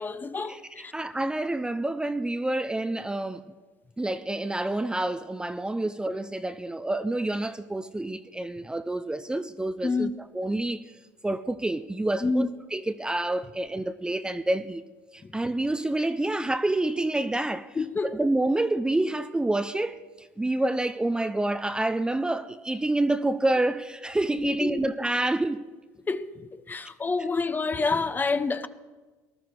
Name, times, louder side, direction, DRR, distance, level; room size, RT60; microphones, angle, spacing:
voice 1, 0.0-0.9 9.8-10.1 12.2-12.5 15.2-15.4 17.7-18.2 24.3-24.8 26.1-28.7, left 4 dB, 25° left, 0.8 m, -28 dB
voice 2, 0.9-3.4 4.0-10.8 11.2-14.8 15.1-17.8 18.0-25.7, right 2 dB, 10° right, 0.6 m, -28 dB
19.5 x 12.0 x 4.8 m
hypercardioid pair, 70°, 8 cm